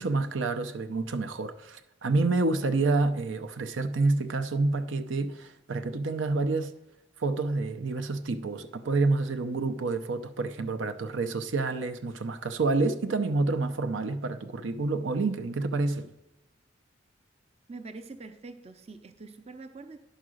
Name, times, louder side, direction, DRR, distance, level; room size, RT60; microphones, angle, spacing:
voice 1, 0.0-6.7 7.2-16.1, right 3 dB, 80° right, 0.6 m, -28 dB
voice 2, 17.7-20.0, right 3 dB, 30° right, 0.6 m, -44 dB
10.0 x 4.8 x 6.3 m
head